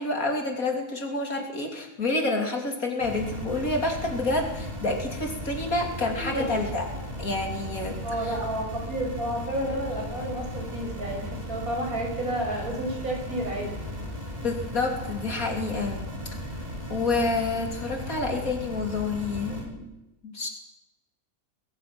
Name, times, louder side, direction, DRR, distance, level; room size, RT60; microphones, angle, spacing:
voice 1, 0.0-6.9 7.2-8.0 8.2-8.3 14.4-16.0 16.9-19.9 20.2-20.5, left 2 dB, 65° left, 2 dB, 3.4 m, -28 dB
sound 1, 3.0-19.6, equal, 25° right, 5.8 m, -36 dB
voice 2, 6.1-6.5 8.0-13.7, right 1 dB, 70° right, 1 dB, 6.4 m, -31 dB
21.5 x 21.0 x 6.1 m, 0.94 s
omnidirectional pair, 1.6 m